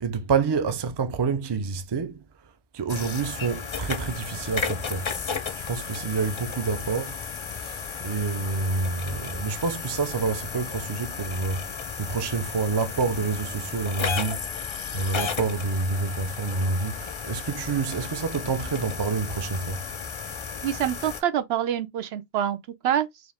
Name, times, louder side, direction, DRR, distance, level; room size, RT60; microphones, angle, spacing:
voice 1, 0.0-2.1 2.8-5.0 5.7-7.1 8.0-11.6 12.0-14.4 14.9-17.0 17.3-19.8, right 4 dB, 35° right, 0.4 m, -27 dB
sound 1, 2.9-21.2, left 6 dB, 40° left, 0.4 m, -34 dB
voice 2, 20.6-22.6 22.8-23.1, right 10 dB, 85° right, 0.8 m, -26 dB
4.8 x 2.5 x 3.4 m
omnidirectional pair, 1.0 m